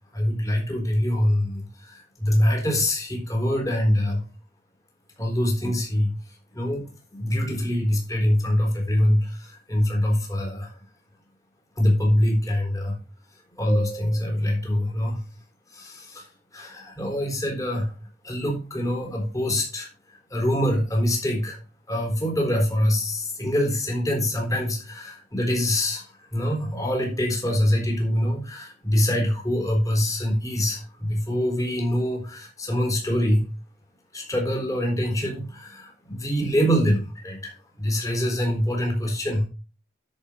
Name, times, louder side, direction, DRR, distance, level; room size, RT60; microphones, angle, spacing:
voice 1, 0.1-4.3 5.2-6.2 6.5-10.7 11.8-13.0 13.6-15.2 15.7-16.3 16.5-17.9 18.2-19.9 20.3-21.6 21.9-26.1 26.3-33.5 34.1-39.5, equal, 20° left, 0 dB, 3.9 m, -24 dB
10.5 x 6.8 x 4.4 m, 0.33 s
head